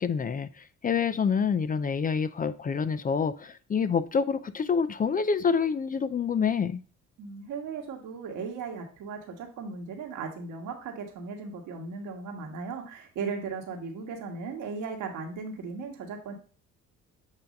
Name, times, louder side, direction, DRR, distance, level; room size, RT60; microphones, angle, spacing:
voice 1, 0.0-6.8, left 6 dB, 30° left, 0.4 m, -27 dB
voice 2, 7.2-16.3, right 5 dB, 90° right, 1.6 m, -37 dB
8.1 x 2.7 x 5.1 m
cardioid pair, 90°, 30 cm